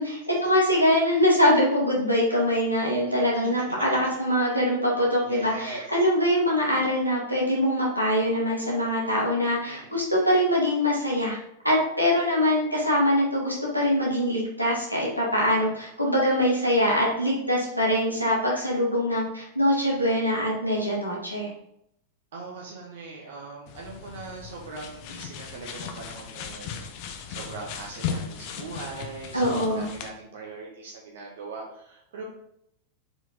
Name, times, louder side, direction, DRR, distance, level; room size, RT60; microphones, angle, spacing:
voice 1, 0.0-11.4 11.6-21.5 29.3-29.9, equal, 90° right, -4 dB, 2.0 m, -23 dB
voice 2, 5.2-6.0 9.6-9.9 15.7-15.9 20.7-21.0 22.3-26.8 27.3-32.3, right 3 dB, 60° right, -3 dB, 1.5 m, -41 dB
sound 1, 23.7-30.1, left 7 dB, 45° left, 0.8 m, -37 dB
6.8 x 4.7 x 3.9 m, 0.75 s
figure-of-eight pair, 90°, 0 cm